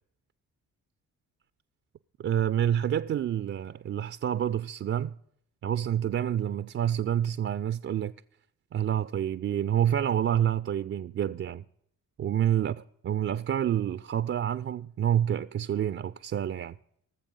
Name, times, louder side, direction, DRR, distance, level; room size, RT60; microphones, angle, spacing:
voice 1, 2.2-5.1 5.6-8.1 8.7-11.6 12.2-12.7 13.0-16.7, right 10 dB, 35° right, 0.4 m, -28 dB
18.0 x 7.2 x 5.3 m
hypercardioid pair, 40°, 41 cm